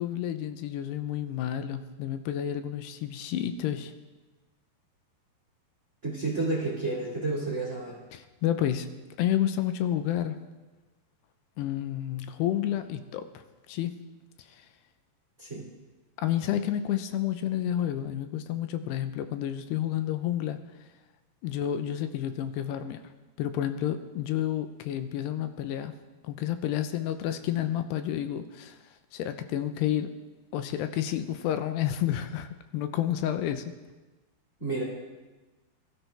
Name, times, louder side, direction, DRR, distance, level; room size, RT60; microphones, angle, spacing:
voice 1, 0.0-3.9 8.1-8.9 9.2-10.4 11.6-13.4 13.7-13.9 16.2-20.6 21.4-23.0 23.4-25.9 26.2-28.8 29.1-30.1 30.5-33.7, left 11 dB, 90° left, 9 dB, 2.9 m, -30 dB
voice 2, 6.0-8.0 15.4-15.7 34.6-34.8, right 3 dB, 25° right, -2 dB, 1.8 m, -30 dB
22.5 x 13.0 x 3.4 m, 1.2 s
omnidirectional pair, 4.8 m